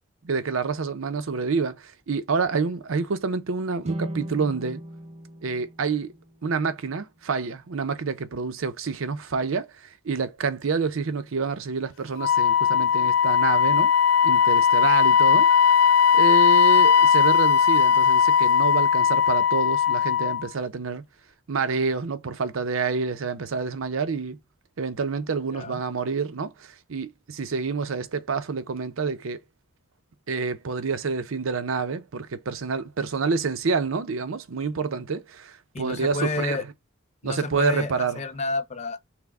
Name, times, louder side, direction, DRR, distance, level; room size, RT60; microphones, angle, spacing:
voice 1, 0.2-4.8 5.4-6.1 6.4-13.9 14.2-15.5 16.1-21.0 21.5-24.4 24.8-29.4 30.3-36.7 37.2-38.2, right 4 dB, 80° right, 0.6 m, -28 dB
sound 1, 3.8-7.1, right 1 dB, 35° right, 0.5 m, -38 dB
Wind instrument woodwind instrument, 12.2-20.5, left 7 dB, 85° left, 0.6 m, -18 dB
voice 2, 35.7-36.6 37.2-39.0, left 3 dB, 35° left, 0.4 m, -30 dB
5.9 x 2.1 x 3.4 m
head